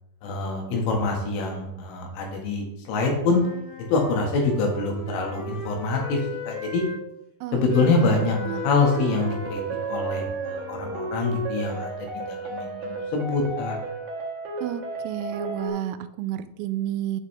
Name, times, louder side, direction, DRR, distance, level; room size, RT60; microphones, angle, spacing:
voice 1, 0.2-3.4 3.9-6.2 6.5-6.8 7.5-8.4 8.6-9.6 9.9-11.9 12.1-13.8, left 3 dB, 75° left, 0 dB, 4.3 m, -25 dB
Wind instrument woodwind instrument, 3.1-7.0 7.7-11.2, left 4 dB, 55° left, 2.2 m, -38 dB
voice 2, 7.4-8.6 14.6-17.2, right 12 dB, 85° right, 12 dB, 3.2 m, -32 dB
sound 1, 7.7-15.7, right 3 dB, 60° right, 2.4 m, -33 dB
9.0 x 8.4 x 3.4 m, 0.83 s
omnidirectional pair, 5.9 m